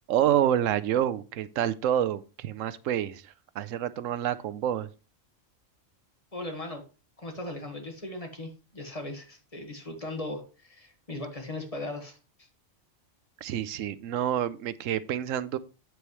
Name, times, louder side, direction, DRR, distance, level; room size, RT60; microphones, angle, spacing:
voice 1, 0.1-4.9 13.4-15.6, right 10 dB, 90° right, 1.0 m, -28 dB
voice 2, 6.3-6.8 7.2-12.5, left 2 dB, 30° left, 1.7 m, -38 dB
8.4 x 8.1 x 3.1 m
omnidirectional pair, 1.3 m